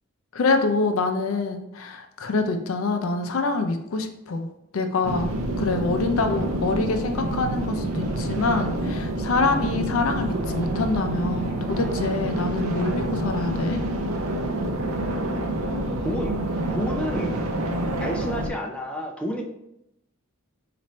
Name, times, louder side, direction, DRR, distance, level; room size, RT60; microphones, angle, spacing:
voice 1, 0.3-4.5 4.7-13.8, left 3 dB, 70° left, 6 dB, 0.4 m, -25 dB
sound 1, 5.0-18.5, right 1 dB, 80° right, 0.5 m, -27 dB
voice 2, 16.0-16.4 16.7-17.3 18.0-19.4, equal, 5° left, 0 dB, 0.4 m, -30 dB
4.2 x 2.5 x 3.1 m, 0.84 s
head